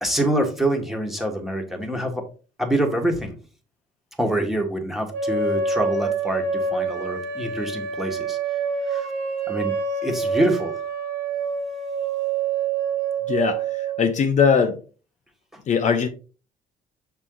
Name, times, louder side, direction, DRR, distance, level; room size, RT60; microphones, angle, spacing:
voice 1, 0.0-2.2 2.6-3.3 4.2-8.4 8.8-9.1 9.5-9.7 10.0-10.7 15.5-15.6, right 1 dB, ahead, 1.6 m, -25 dB
sound 1, 5.1-14.1, right 5 dB, 75° right, 2.1 m, -26 dB
voice 2, 13.3-14.8 15.7-16.1, left 6 dB, 45° left, 0.7 m, -20 dB
6.0 x 4.5 x 3.9 m
cardioid pair, 110°, 17 cm